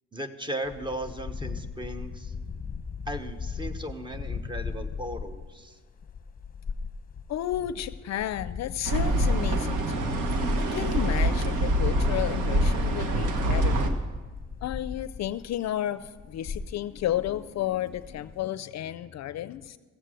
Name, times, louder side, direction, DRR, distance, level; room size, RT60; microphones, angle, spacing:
voice 1, 0.1-2.3 3.1-5.8, right 1 dB, 15° right, 9 dB, 1.1 m, -36 dB
sound 1, 0.6-15.7 16.0-18.5, left 5 dB, 30° left, 0.9 m, -39 dB
voice 2, 7.3-10.1 10.5-13.9 14.6-19.8, left 12 dB, 60° left, 15 dB, 0.5 m, -32 dB
sound 2, 8.8-13.9, right 1 dB, 85° right, 1.3 m, -25 dB
15.0 x 8.1 x 7.7 m, 1.4 s
cardioid pair, 90°, 30 cm